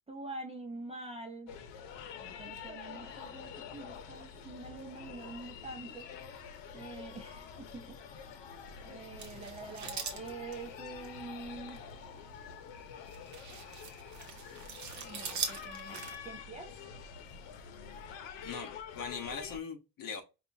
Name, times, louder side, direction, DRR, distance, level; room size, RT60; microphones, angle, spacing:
voice 1, 0.1-1.5 2.2-6.1 6.7-8.1 8.8-11.8 15.0-16.7, right 3 dB, 15° right, 0.6 m, -46 dB
sound 1, 1.5-19.6, left 7 dB, 75° left, 1.0 m, -47 dB
sound 2, 9.2-11.1 12.2-12.4 13.1-16.2, right 5 dB, 40° right, 0.9 m, -41 dB
voice 2, 18.4-20.2, left 5 dB, 50° left, 1.3 m, -41 dB
5.2 x 2.5 x 2.7 m
cardioid pair, 165°, 43 cm